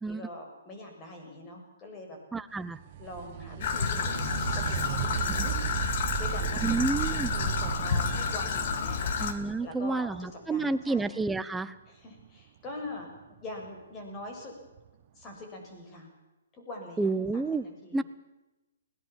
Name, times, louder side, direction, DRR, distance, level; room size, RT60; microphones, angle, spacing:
voice 1, 0.1-2.2 3.0-4.3 4.5-5.6 6.1-9.2 9.6-11.1 11.9-13.1 13.4-14.5 15.2-16.1 16.5-17.4 17.8-18.0, left 2 dB, 20° left, 2 dB, 6.9 m, -43 dB
voice 2, 2.3-2.8 6.6-7.3 9.2-11.7 17.0-17.6 17.9-18.0, right 3 dB, 5° right, 13 dB, 0.8 m, -30 dB
sound 1, 2.7-10.2 13.6-13.7 14.8-14.9, right 12 dB, 40° right, 1.3 m, -35 dB
Traffic noise roadway noise / Trickle dribble, 3.6-9.3, left 6 dB, 50° left, 2.4 m, -30 dB
21.0 x 18.0 x 7.5 m, 1.0 s
hypercardioid pair, 145°, 0 cm